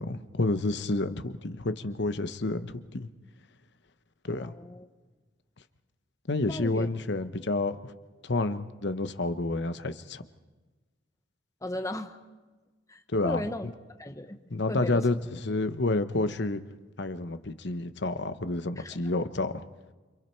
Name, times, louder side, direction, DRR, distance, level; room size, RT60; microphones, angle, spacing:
voice 1, 0.0-3.1 4.2-4.5 6.3-7.8 8.2-10.2 13.1-13.4 14.5-16.6 17.0-19.5, left 2 dB, 60° left, 11 dB, 1.1 m, -29 dB
voice 2, 4.3-4.9 6.5-6.9 11.6-12.2 12.9-13.7 14.0-15.1 18.8-19.0, left 1 dB, 15° left, 8 dB, 1.0 m, -36 dB
28.5 x 26.5 x 4.6 m, 1.3 s
head